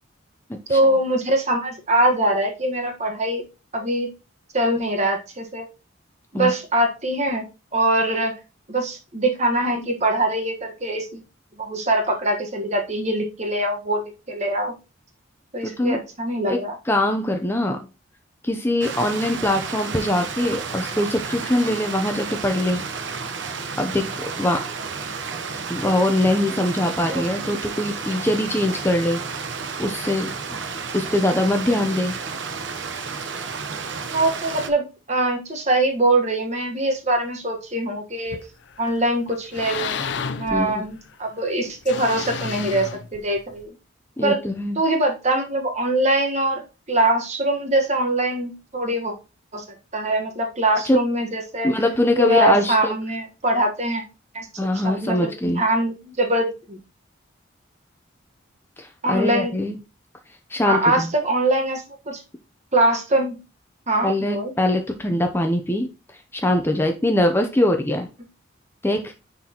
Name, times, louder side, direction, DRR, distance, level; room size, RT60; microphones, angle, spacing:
voice 1, 0.7-3.4 3.7-4.1 4.5-5.6 6.3-7.4 7.7-8.3 8.7-11.2 11.6-14.7 15.5-16.8 27.0-27.5 34.1-38.4 38.8-40.0 40.4-43.7 44.2-44.4 44.7-49.1 49.5-49.6 49.9-51.7 52.2-54.0 54.3-54.5 54.8-56.8 59.0-59.5 60.6-62.2 62.7-63.4 63.9-64.5, right 1 dB, 35° right, 3 dB, 1.3 m, -23 dB
voice 2, 15.6-16.0 16.5-16.6 16.9-17.8 18.4-22.9 23.8-24.6 25.7-29.2 29.8-30.6 30.9-32.2 40.5-40.9 44.2-44.8 50.8-51.0 51.6-52.9 54.6-55.6 58.8-59.8 60.5-61.1 64.0-68.1 68.8-69.1, left 1 dB, 10° left, 4 dB, 0.6 m, -22 dB
Stream, 18.8-34.7, right 5 dB, 65° right, 0.8 m, -31 dB
sound 1, 38.3-38.9 39.3-41.1 41.8-43.6, left 6 dB, 60° left, 0.5 m, -31 dB
9.9 x 4.1 x 2.9 m, 0.30 s
head